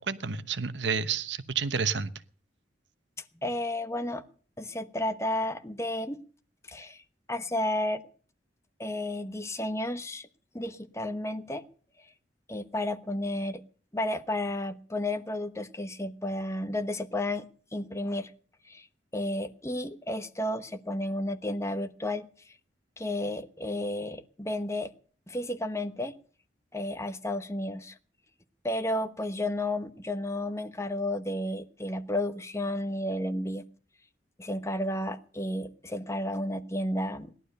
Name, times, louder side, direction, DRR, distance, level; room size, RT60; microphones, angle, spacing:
voice 1, 0.1-2.1, right 6 dB, 80° right, 14 dB, 1.0 m, -30 dB
voice 2, 3.4-4.2 4.6-6.2 6.7-7.0 7.3-8.0 8.8-10.3 10.5-11.6 12.5-13.6 13.9-18.3 18.6-18.9 19.1-22.5 23.0-24.9 25.3-26.1 26.7-28.0 28.6-33.7 34.4-37.3, left 1 dB, 15° left, 9 dB, 1.1 m, -32 dB
17.5 x 12.0 x 6.6 m, 0.43 s
head